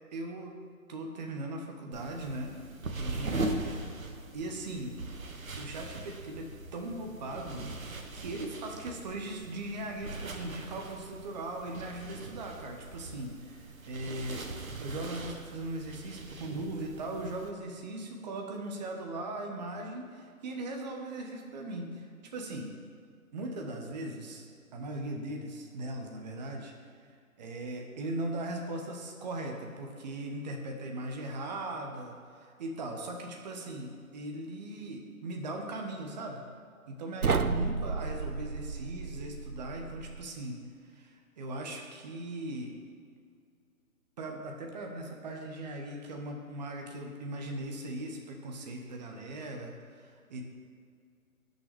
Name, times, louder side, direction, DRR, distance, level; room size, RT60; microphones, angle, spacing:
voice 1, 0.1-0.6 0.9-2.6 2.9-3.8 4.3-5.0 5.6-14.5 14.8-22.7 23.3-26.7 27.4-36.4 36.9-40.6 40.9-42.7 44.2-50.5, right 1 dB, 30° right, 2 dB, 1.1 m, -39 dB
sound 1, 1.9-17.5, right 2 dB, 70° right, 1.3 m, -41 dB
sound 2, 37.2-40.3, right 5 dB, 90° right, 0.7 m, -32 dB
17.5 x 6.6 x 3.4 m, 2.2 s
figure-of-eight pair, 135°, 43 cm